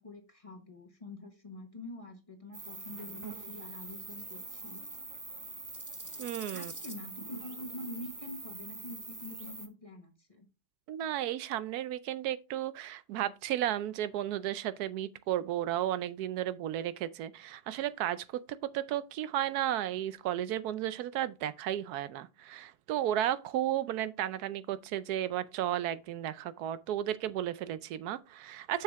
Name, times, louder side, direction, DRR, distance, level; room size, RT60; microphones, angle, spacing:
voice 1, 0.0-4.8 6.5-10.5, left 1 dB, 25° left, 1.2 m, -46 dB
sound 1, 2.5-9.7, right 2 dB, 20° right, 0.5 m, -44 dB
voice 2, 6.2-6.7 10.9-18.4 18.7-28.8, right 12 dB, 80° right, 1.1 m, -33 dB
6.8 x 6.4 x 3.5 m
omnidirectional pair, 1.7 m